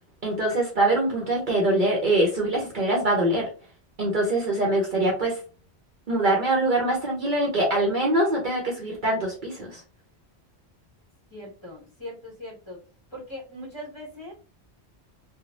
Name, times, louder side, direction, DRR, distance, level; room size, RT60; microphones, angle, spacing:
voice 1, 0.2-3.5 4.0-5.4 6.1-9.8, right 1 dB, 50° right, -2 dB, 0.8 m, -23 dB
voice 2, 11.3-12.8 13.1-14.3, left 1 dB, 25° left, -5 dB, 1.4 m, -40 dB
3.1 x 2.3 x 2.5 m, 0.37 s
omnidirectional pair, 1.1 m